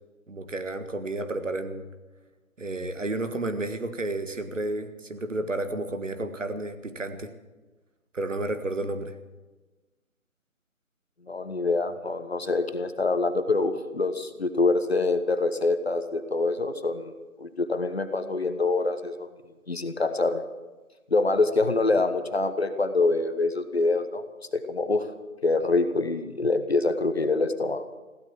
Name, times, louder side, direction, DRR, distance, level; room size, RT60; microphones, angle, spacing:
voice 1, 0.3-1.9 2.6-7.3 8.1-9.2, right 2 dB, 60° right, 9 dB, 1.6 m, -31 dB
voice 2, 11.3-17.1 17.4-19.3 19.7-20.4 21.1-24.2 24.5-25.1 25.4-27.9, left 3 dB, 45° left, 10 dB, 1.2 m, -25 dB
16.0 x 12.0 x 7.5 m, 1.2 s
figure-of-eight pair, 170°, 42 cm